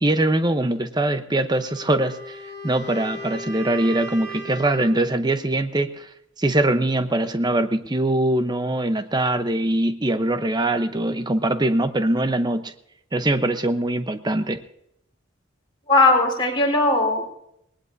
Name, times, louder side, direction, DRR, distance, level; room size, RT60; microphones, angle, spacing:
voice 1, 0.0-2.4 2.6-6.1 6.4-12.7 13.1-14.6, right 1 dB, 20° right, 10 dB, 0.8 m, -22 dB
Wind instrument woodwind instrument, 1.5-5.1, right 1 dB, 90° right, 4.2 m, -37 dB
voice 2, 15.9-17.4, left 2 dB, 25° left, 0 dB, 4.1 m, -18 dB
19.5 x 19.5 x 2.7 m, 0.79 s
head